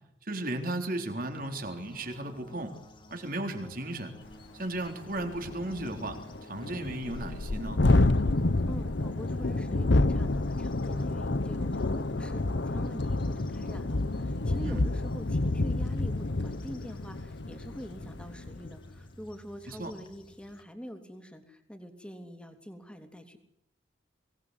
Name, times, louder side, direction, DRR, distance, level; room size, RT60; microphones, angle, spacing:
voice 1, 0.2-2.7 3.1-4.1 4.5-7.8 14.6-14.8 19.7-19.9, right 1 dB, 50° right, 5 dB, 3.8 m, -35 dB
sound 1, 1.3-20.6, equal, 25° left, 2.2 m, -51 dB
Thunderstorm, 4.3-4.4 4.8-4.9 5.2-18.8, left 2 dB, 65° left, 0.9 m, -29 dB
voice 2, 8.7-23.4, equal, 5° left, 5 dB, 3.1 m, -45 dB
24.0 x 19.0 x 8.2 m, 0.83 s
head